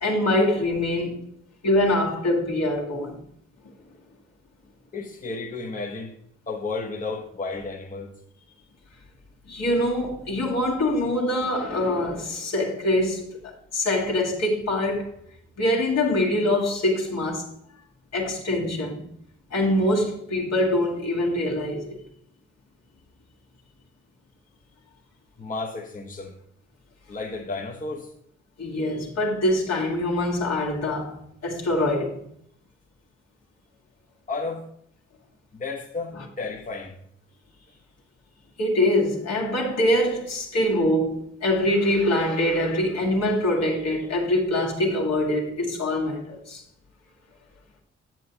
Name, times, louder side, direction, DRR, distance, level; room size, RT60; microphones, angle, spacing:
voice 1, 0.0-1.3 1.6-3.2 9.5-15.1 15.6-17.5 18.1-19.1 19.5-22.0 28.6-32.2 38.6-46.6, left 1 dB, 50° left, 1.9 m, -24 dB
voice 2, 4.9-6.1 6.5-8.1 25.4-26.4 27.1-28.1 34.3-34.7 35.5-37.0, left 3 dB, 25° left, 1.1 m, -32 dB
7.7 x 7.5 x 2.9 m
hypercardioid pair, 40°, 32 cm